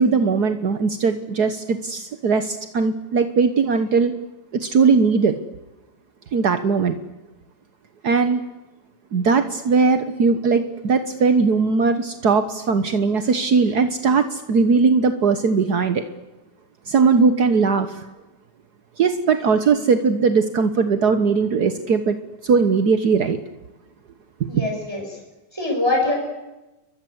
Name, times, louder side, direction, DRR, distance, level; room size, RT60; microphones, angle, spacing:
voice 1, 0.0-4.1 4.5-5.3 6.3-7.0 8.0-8.4 9.1-16.0 16.9-18.0 19.0-22.2 22.4-23.4 24.4-24.6, right 5 dB, 65° right, 9 dB, 1.0 m, -19 dB
voice 2, 24.5-25.2 25.5-26.1, left 2 dB, 10° right, 0 dB, 6.6 m, -23 dB
30.0 x 23.0 x 8.1 m, 1.0 s
omnidirectional pair, 3.5 m